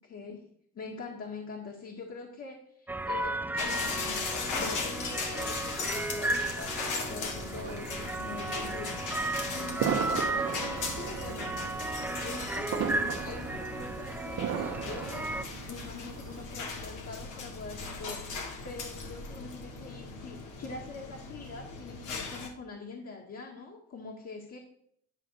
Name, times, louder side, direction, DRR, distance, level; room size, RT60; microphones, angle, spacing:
voice 1, 0.0-0.4 0.7-8.9 9.5-11.5 12.2-15.3 15.7-24.6, left 4 dB, 55° left, -1 dB, 1.8 m, -44 dB
sound 1, 2.9-15.4, right 2 dB, 5° right, 0.5 m, -35 dB
sound 2, 3.6-22.5, left 4 dB, 85° left, 1.6 m, -38 dB
sound 3, 7.4-16.4, right 7 dB, 60° right, 1.0 m, -37 dB
10.5 x 3.7 x 6.6 m, 0.66 s
cardioid pair, 90°, 30 cm